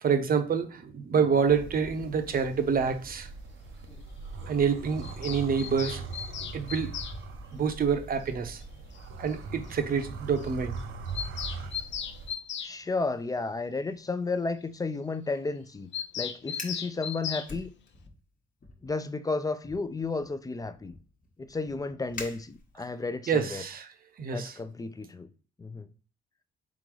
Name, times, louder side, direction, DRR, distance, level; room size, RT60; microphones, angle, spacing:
voice 1, 0.0-3.3 4.5-6.0 6.5-6.9 7.5-8.6 9.2-10.7 23.3-23.9 24.2-24.6, right 6 dB, 45° right, 0.7 m, -27 dB
sound 1, 1.5-12.3, right 3 dB, 80° right, 0.7 m, -41 dB
Bird vocalization bird call bird song, 5.0-7.2 8.6-8.7 8.9-9.0 9.3-9.4 9.7-9.8 10.0-10.1 10.4-10.5 10.8-12.7 15.9-17.5, left 8 dB, 65° left, 0.6 m, -37 dB
voice 2, 12.6-15.9 16.2-17.7 18.8-20.9 21.4-23.6 24.3-25.3 25.6-25.9, left 3 dB, 20° left, 0.4 m, -33 dB
Fire, 16.4-16.9 17.4-18.2 18.6-18.9 19.6-23.0, left 3 dB, 45° left, 1.1 m, -45 dB
3.9 x 3.8 x 3.1 m
cardioid pair, 90°, 20 cm